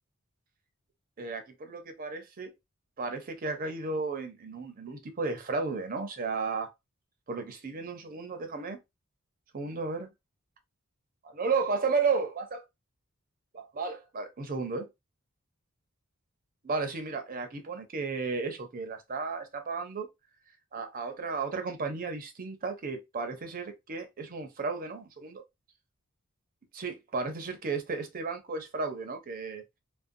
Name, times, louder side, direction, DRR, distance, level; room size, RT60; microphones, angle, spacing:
voice 1, 1.2-2.5 3.0-6.7 7.3-8.8 9.5-10.1 11.2-12.6 13.5-14.9 16.6-20.1 20.7-25.4 26.7-29.6, right 4 dB, 40° right, 0.6 m, -33 dB
2.5 x 2.1 x 2.5 m
head